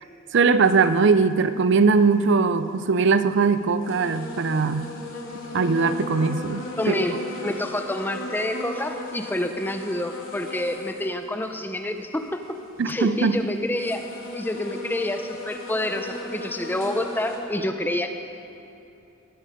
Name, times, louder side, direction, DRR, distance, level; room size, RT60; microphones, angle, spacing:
voice 1, 0.3-4.9 5.5-7.1 12.8-13.4, right 4 dB, 65° right, 12 dB, 0.5 m, -20 dB
sound 1, 0.6-1.0 2.7-2.8 3.3-3.4 3.8-11.1 11.5-11.6 12.2-13.1 13.6-17.4, left 1 dB, 80° left, 2.6 m, -37 dB
voice 2, 6.8-12.4 12.9-14.0 14.3-18.1, left 1 dB, 10° left, 6 dB, 0.6 m, -28 dB
19.5 x 10.0 x 5.2 m, 2.8 s
head